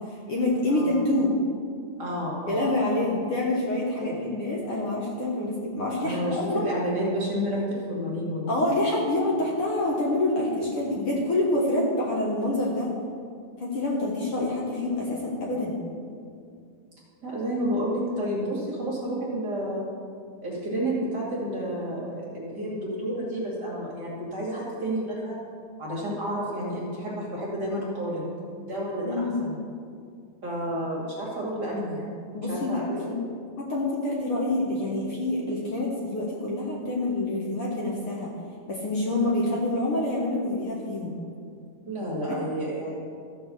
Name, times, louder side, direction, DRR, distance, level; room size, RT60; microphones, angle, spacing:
voice 1, 0.0-1.3 2.5-6.7 8.5-12.9 13.6-15.8 29.0-29.4 32.3-33.1 33.6-38.3 38.7-41.2 42.3-42.4, left 1 dB, 55° left, -3 dB, 1.9 m, -27 dB
voice 2, 0.7-1.0 2.0-3.0 4.0-4.3 6.0-8.5 17.2-19.9 20.4-25.4 25.8-28.3 28.7-29.6 30.4-32.1 32.5-33.0 41.9-43.0, equal, 35° right, -5 dB, 2.3 m, -30 dB
14.0 x 4.7 x 6.9 m, 2.3 s
omnidirectional pair, 3.4 m